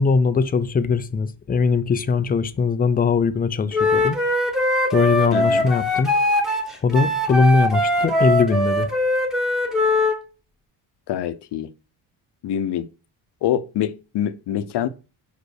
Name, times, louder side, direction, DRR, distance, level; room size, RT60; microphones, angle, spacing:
voice 1, 0.0-4.2 4.9-6.1 6.8-8.9, left 5 dB, 20° left, 0.4 m, -20 dB
Wind instrument woodwind instrument, 3.7-10.2, left 1 dB, ahead, 1.2 m, -21 dB
voice 2, 5.3-5.7 11.1-11.7 12.4-12.9 13.4-14.9, left 10 dB, 60° left, 0.8 m, -25 dB
5.2 x 5.2 x 6.4 m
cardioid pair, 160°, 47 cm